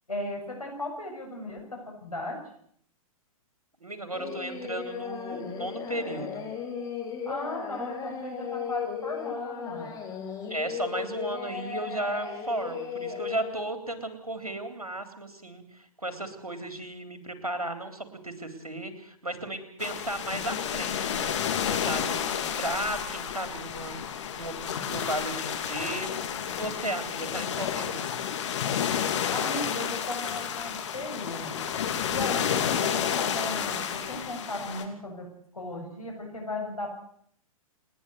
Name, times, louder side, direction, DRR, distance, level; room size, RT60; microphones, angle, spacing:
voice 1, 0.1-2.4 7.3-9.9 29.3-35.3 35.5-36.9, left 1 dB, 80° left, 1 dB, 7.3 m, -36 dB
voice 2, 3.8-6.4 10.5-21.3 21.7-28.1, right 1 dB, 80° right, 8 dB, 3.7 m, -35 dB
Singing, 4.1-13.6, left 7 dB, 20° left, 4.3 m, -36 dB
sound 1, 19.8-34.8, left 8 dB, 50° left, 2.7 m, -31 dB
29.0 x 11.0 x 8.2 m, 0.66 s
figure-of-eight pair, 110°, 19 cm